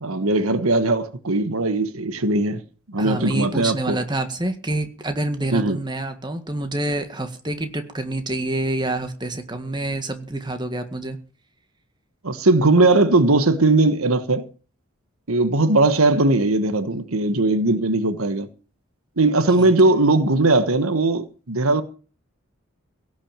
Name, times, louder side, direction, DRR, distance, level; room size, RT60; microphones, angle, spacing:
voice 1, 0.0-2.6 2.9-4.0 5.5-5.8 12.2-14.5 15.3-18.5 19.2-21.8, right 2 dB, 90° right, 1.3 m, -19 dB
voice 2, 3.0-11.2 19.6-19.7, right 2 dB, 20° right, 1.8 m, -27 dB
17.0 x 6.2 x 8.9 m
head